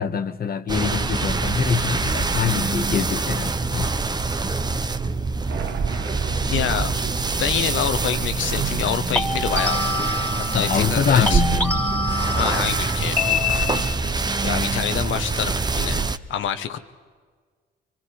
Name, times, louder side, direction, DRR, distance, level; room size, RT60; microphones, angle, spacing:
voice 1, 0.0-3.9 10.5-11.9, left 7 dB, 50° left, 9 dB, 1.6 m, -24 dB
sound 1, 0.7-16.2, right 4 dB, 20° right, 1.0 m, -25 dB
sound 2, 4.2-4.5 9.2-11.0 11.3-14.1, left 3 dB, 10° left, 2.8 m, -26 dB
sound 3, 5.5-10.7, right 8 dB, 70° right, 1.4 m, -35 dB
voice 2, 6.5-6.9 7.4-10.1 10.5-11.4 12.4-13.2 13.4-13.9 14.4-16.0 16.3-16.8, left 9 dB, 75° left, 9 dB, 1.6 m, -26 dB
27.5 x 25.0 x 4.9 m, 1.6 s
cardioid pair, 90°, 20 cm